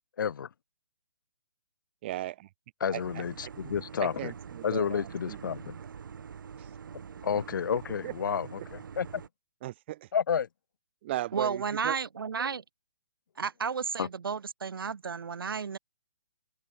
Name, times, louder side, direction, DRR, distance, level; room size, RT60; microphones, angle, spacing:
voice 1, 0.2-0.5 2.8-4.3 4.6-5.7 7.2-8.5 9.0-9.2 10.1-10.5 14.0-14.1, left 7 dB, 65° left, 0.7 m, -30 dB
voice 2, 2.0-2.5 2.9-5.9 6.6-6.7 7.3-7.4 8.0-8.1 8.6-8.7 9.6-10.1 11.0-12.0, right 15 dB, 30° right, 1.6 m, -38 dB
sound 1, 3.0-9.3, right 7 dB, 65° right, 2.3 m, -45 dB
voice 3, 11.3-12.6 13.4-15.8, right 6 dB, 85° right, 1.4 m, -32 dB
open air
hypercardioid pair, 165°, 11 cm